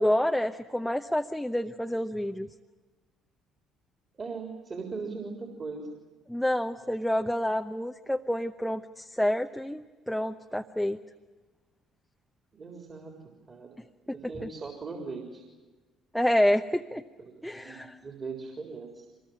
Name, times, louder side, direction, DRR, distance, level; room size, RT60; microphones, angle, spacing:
voice 1, 0.0-2.5 6.3-11.0 16.1-17.0 17.4-17.9, left 1 dB, 5° left, 5 dB, 0.9 m, -28 dB
voice 2, 4.1-5.9 12.5-13.1 13.5-13.8 14.1-15.4 17.2-19.1, right 4 dB, 35° right, 2 dB, 3.8 m, -39 dB
25.0 x 21.0 x 9.0 m, 1.3 s
figure-of-eight pair, 50°, 0 cm